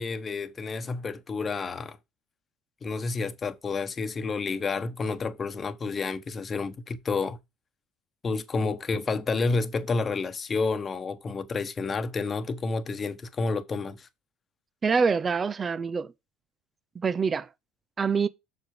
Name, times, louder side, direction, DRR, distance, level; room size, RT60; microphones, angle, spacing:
voice 1, 0.0-2.0 2.8-7.4 8.2-14.1, left 4 dB, 30° left, 1.2 m, -30 dB
voice 2, 14.8-16.1 17.0-17.5 18.0-18.3, right 5 dB, 30° right, 0.7 m, -25 dB
7.5 x 6.3 x 5.1 m
hypercardioid pair, 65°, 0 cm